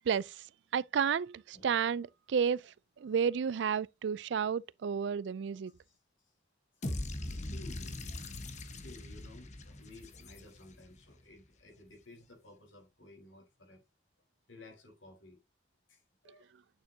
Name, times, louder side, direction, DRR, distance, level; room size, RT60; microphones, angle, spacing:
voice 1, 0.7-2.6 3.0-5.7, right 7 dB, 70° right, 0.3 m, -31 dB
voice 2, 5.7-6.4 6.7-13.8 14.5-15.4 15.9-16.6, left 2 dB, 85° left, 4.3 m, -55 dB
sound 1, 6.8-10.9, left 1 dB, 40° left, 1.2 m, -41 dB
9.2 x 6.6 x 2.8 m
head